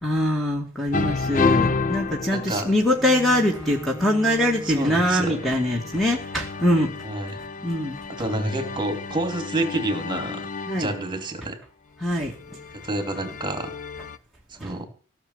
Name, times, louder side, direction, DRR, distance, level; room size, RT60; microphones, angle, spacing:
voice 1, 0.0-6.9 7.6-8.0 10.7-10.9 12.0-12.3 14.6-14.7, left 1 dB, ahead, 0 dB, 2.3 m, -23 dB
sound 1, 0.9-3.3 4.5-11.2 12.2-14.2, left 4 dB, 35° left, 0.7 m, -30 dB
voice 2, 2.3-2.7 4.6-5.4 7.0-7.4 8.2-10.5 10.8-11.6 12.8-13.7 14.5-14.8, right 2 dB, 20° right, 7 dB, 3.1 m, -28 dB
Bowed string instrument, 2.9-8.5 9.2-9.3, left 1 dB, 85° left, 5.1 m, -41 dB
17.0 x 6.8 x 9.8 m, 0.40 s
head